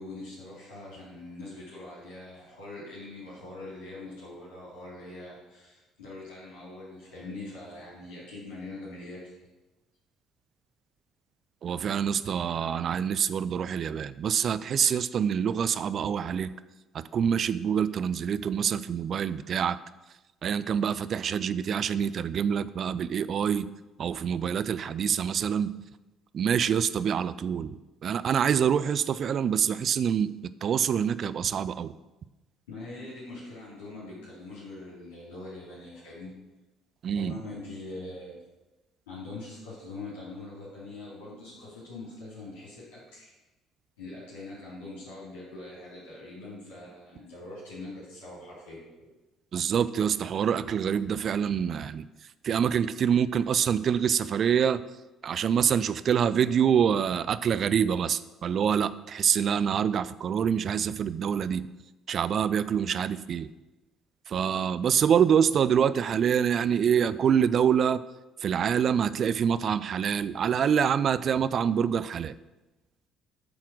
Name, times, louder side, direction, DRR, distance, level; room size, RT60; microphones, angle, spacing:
voice 1, 0.0-9.5 32.7-36.3 37.1-38.4 39.1-43.3 44.0-49.1, left 2 dB, 75° left, -8 dB, 2.9 m, -43 dB
voice 2, 11.6-16.5 16.9-19.8 20.4-23.7 24.0-25.7 26.3-31.9 37.0-37.4 49.5-52.0 52.4-54.8 55.2-61.7 62.1-63.5 64.3-68.0 68.4-72.3, right 8 dB, 50° right, 15 dB, 0.3 m, -26 dB
8.5 x 3.8 x 6.2 m, 1.1 s
hypercardioid pair, 50°, 0 cm